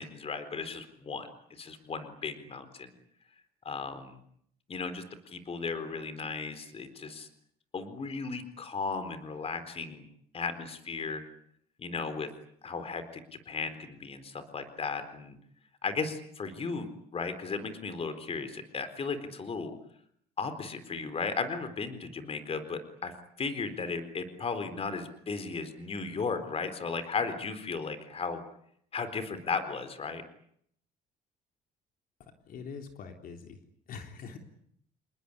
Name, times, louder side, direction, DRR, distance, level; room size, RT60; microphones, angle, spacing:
voice 1, 0.0-2.9 3.6-4.2 4.7-7.3 7.7-10.1 10.3-11.2 11.8-12.3 12.6-15.4 15.8-19.8 20.4-23.1 23.4-28.4 28.9-30.2, left 4 dB, 35° left, 10 dB, 4.0 m, -35 dB
voice 2, 32.2-33.6 33.9-34.4, left 6 dB, 60° left, 5 dB, 3.7 m, -44 dB
29.0 x 20.5 x 9.9 m, 0.70 s
cardioid pair, 110°, 17 cm